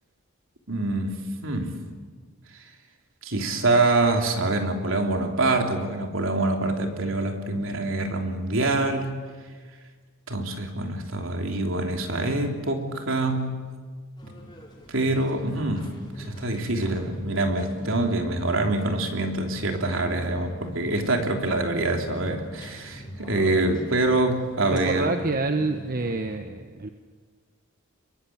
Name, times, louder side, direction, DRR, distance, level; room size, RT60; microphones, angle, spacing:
voice 1, 0.7-1.1 1.4-1.7 3.2-9.2 10.3-13.5 14.9-15.9 16.2-25.1, right 2 dB, 65° right, 3 dB, 3.4 m, -25 dB
sound 1, 14.2-26.4, equal, 20° left, 5.0 m, -41 dB
voice 2, 24.7-26.9, right 3 dB, 40° right, 6 dB, 1.1 m, -27 dB
27.5 x 22.5 x 8.7 m, 1.5 s
head